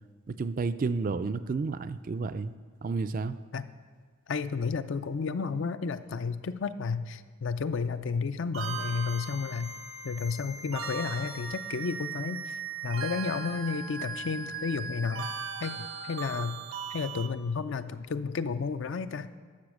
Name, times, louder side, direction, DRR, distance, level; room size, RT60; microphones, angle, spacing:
voice 1, 0.3-2.5 2.8-3.4, right 4 dB, 40° right, 12 dB, 0.3 m, -31 dB
voice 2, 4.3-9.7 10.0-15.3 15.6-16.6 16.9-19.3, left 5 dB, 60° left, 12 dB, 0.4 m, -32 dB
sound 1, 8.5-17.3, right 5 dB, 90° right, 1.1 m, -38 dB
11.5 x 6.7 x 6.3 m, 1.5 s
head